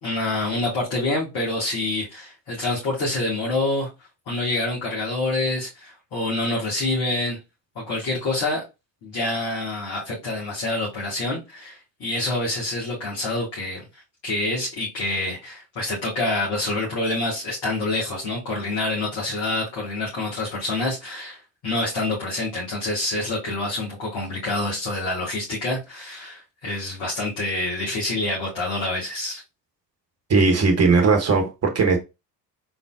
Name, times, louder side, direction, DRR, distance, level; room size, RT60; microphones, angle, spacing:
voice 1, 0.0-3.9 4.3-7.4 7.8-8.6 9.0-13.8 14.2-29.4, left 2 dB, 50° left, 2.2 m, -27 dB
voice 2, 30.3-32.0, right 4 dB, 30° right, 1.3 m, -18 dB
4.0 x 3.8 x 2.5 m
figure-of-eight pair, 55°, 49 cm